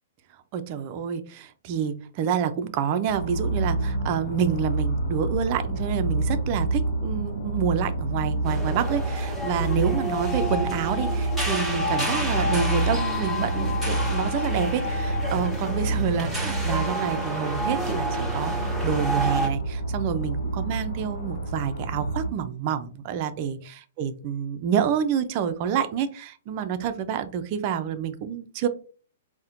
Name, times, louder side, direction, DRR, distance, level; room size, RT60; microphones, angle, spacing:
voice 1, 0.5-28.7, right 8 dB, 45° right, 9 dB, 0.4 m, -28 dB
sound 1, 3.0-22.3, right 2 dB, 75° left, 0.8 m, -28 dB
sound 2, 8.4-19.5, equal, ahead, 1.1 m, -30 dB
4.1 x 2.1 x 2.5 m, 0.39 s
hypercardioid pair, 135°, 0 cm